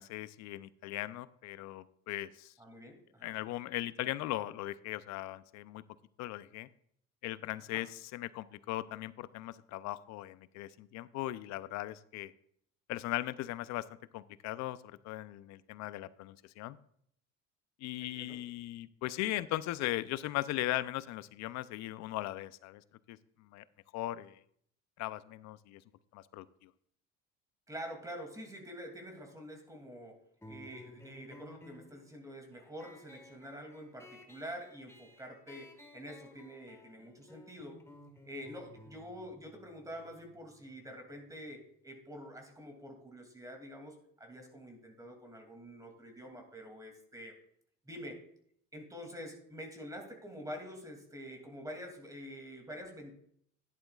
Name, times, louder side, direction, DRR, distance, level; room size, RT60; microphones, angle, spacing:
voice 1, 0.0-2.5 3.2-5.8 6.2-6.7 7.2-12.3 12.9-13.9 14.1-16.8 17.8-22.8 23.1-23.2 23.5-23.6 23.9-24.4 25.0-25.8 26.1-26.7, left 16 dB, 70° left, 16 dB, 0.6 m, -38 dB
voice 2, 2.6-3.4 7.7-7.8 18.0-18.4 27.7-30.2 30.5-37.8 38.2-47.4 47.9-48.2 48.7-53.2, equal, 10° right, 3 dB, 2.6 m, -47 dB
sound 1, 30.4-41.5, left 2 dB, 10° left, 1.4 m, -57 dB
12.0 x 10.5 x 2.4 m, 0.68 s
supercardioid pair, 95°, 29 cm